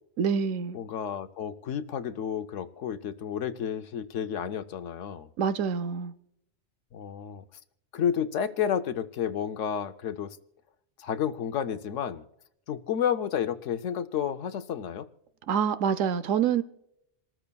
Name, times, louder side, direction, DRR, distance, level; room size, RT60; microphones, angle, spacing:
voice 1, 0.2-0.8 5.4-6.1 15.5-16.6, right 7 dB, 75° right, 1.0 m, -26 dB
voice 2, 0.7-5.3 6.9-7.4 7.9-10.4 11.0-12.2 12.7-15.1, left 8 dB, 70° left, 1.0 m, -31 dB
28.5 x 14.0 x 2.3 m
omnidirectional pair, 1.4 m